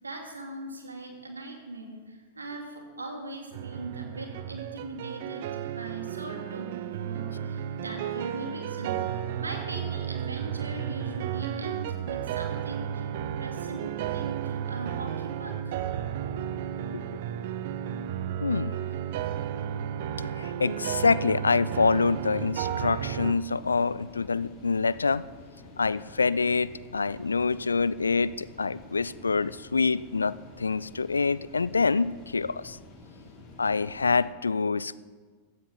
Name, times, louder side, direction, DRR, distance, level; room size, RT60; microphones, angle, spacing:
voice 1, 0.0-13.1 13.4-15.8, right 2 dB, 80° right, 3 dB, 2.4 m, -40 dB
sound 1, 3.5-23.3, right 9 dB, 55° right, 0.7 m, -33 dB
voice 2, 18.4-18.8 19.8-19.9 20.2-25.2 25.8-32.8 33.6-35.0, left 4 dB, 80° left, 19 dB, 0.4 m, -26 dB
sound 2, 21.6-34.3, left 2 dB, 40° left, 5.2 m, -49 dB
16.0 x 14.5 x 4.0 m, 1.5 s
figure-of-eight pair, 95°, 0 cm